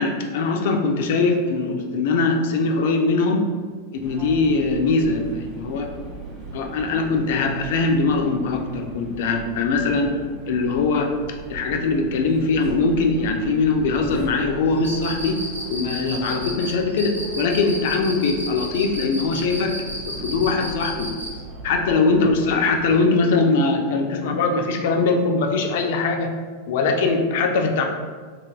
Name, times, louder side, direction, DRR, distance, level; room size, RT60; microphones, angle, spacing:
voice 1, 0.0-3.5 4.0-5.2 5.6-5.9 6.5-10.1 10.5-11.1 11.5-15.4 15.7-19.8 20.0-21.1 21.6-26.3 26.7-27.8, left 3 dB, 55° left, 3 dB, 0.3 m, -21 dB
sound 1, 4.0-22.9, right 2 dB, 35° right, 0.6 m, -38 dB
Cricket, 14.8-21.4, right 1 dB, 80° right, 0.5 m, -33 dB
3.1 x 2.2 x 2.3 m, 1.5 s
figure-of-eight pair, 90°, 0 cm